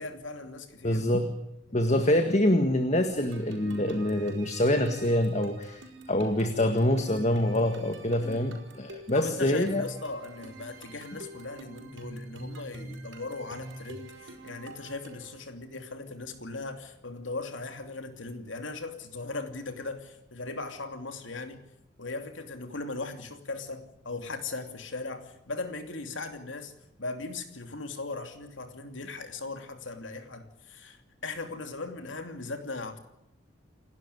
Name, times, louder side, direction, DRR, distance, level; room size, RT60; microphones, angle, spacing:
voice 1, 0.0-1.2 1.7-1.8 8.2-8.6 9.1-21.6 22.0-26.7 27.0-33.0, left 3 dB, 80° left, 7 dB, 2.8 m, -38 dB
voice 2, 0.8-1.3 1.7-5.8 6.1-9.8, left 1 dB, 35° left, 7 dB, 1.7 m, -25 dB
sound 1, 3.1-15.4, right 1 dB, 80° right, 5.2 m, -46 dB
29.0 x 12.0 x 9.7 m, 0.84 s
head